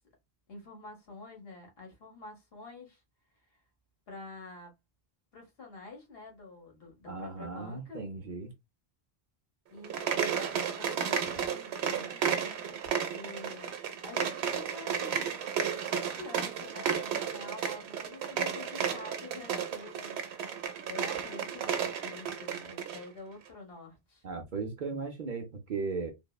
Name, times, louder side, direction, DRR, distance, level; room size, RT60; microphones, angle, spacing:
voice 1, 0.5-3.0 4.1-4.7 5.3-8.0 9.7-13.7 14.0-20.2 20.8-24.2, left 3 dB, 65° left, 1.3 m, -48 dB
voice 2, 7.1-8.5 24.2-26.1, right 4 dB, 55° right, 0.6 m, -36 dB
sound 1, 9.8-23.0, right 7 dB, 90° right, 0.9 m, -33 dB
3.4 x 2.0 x 2.2 m
omnidirectional pair, 1.1 m